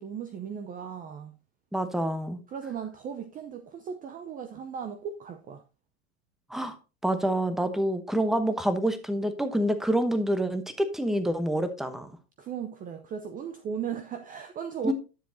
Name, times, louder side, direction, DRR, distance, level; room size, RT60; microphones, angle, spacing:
voice 1, 0.0-1.3 2.5-5.6 12.4-14.9, right 7 dB, 20° right, 0.6 m, -37 dB
voice 2, 1.7-2.4 6.5-6.8 7.0-12.1 14.8-14.9, right 1 dB, ahead, 0.9 m, -27 dB
10.5 x 7.3 x 2.7 m
hypercardioid pair, 100°, 43 cm